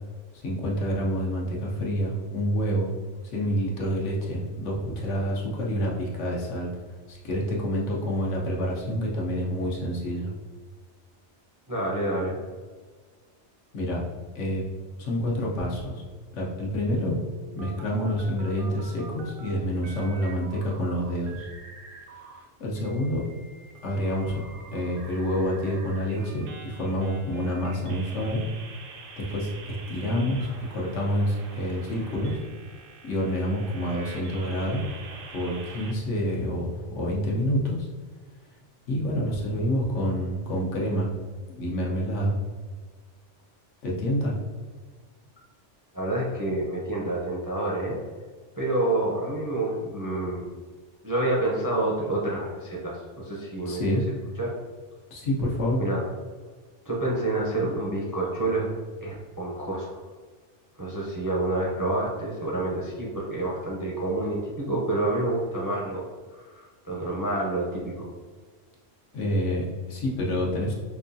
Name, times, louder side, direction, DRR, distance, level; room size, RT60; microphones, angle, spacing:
voice 1, 0.3-2.9 3.3-6.7 7.1-10.3 13.7-14.0 14.3-14.6 15.0-16.0 16.3-17.2 17.5-21.5 22.4-23.2 23.8-24.4 24.7-28.4 29.2-32.4 33.0-34.9 35.3-37.9 38.9-41.1 41.5-42.4 43.8-44.4 53.7-54.0 55.1-55.8 69.1-70.7, equal, 85° left, -3 dB, 1.2 m, -28 dB
voice 2, 11.7-12.4 45.9-48.0 48.6-50.4 51.0-54.0 54.4-54.5 55.8-56.1 56.9-58.7 59.0-60.0 60.8-66.0 66.3-68.1, right 2 dB, 30° right, -4 dB, 0.4 m, -28 dB
sound 1, 16.8-19.5 19.8-22.4 22.8-35.9, right 4 dB, 60° right, 0.7 m, -46 dB
5.3 x 2.3 x 2.6 m, 1.5 s
omnidirectional pair, 1.2 m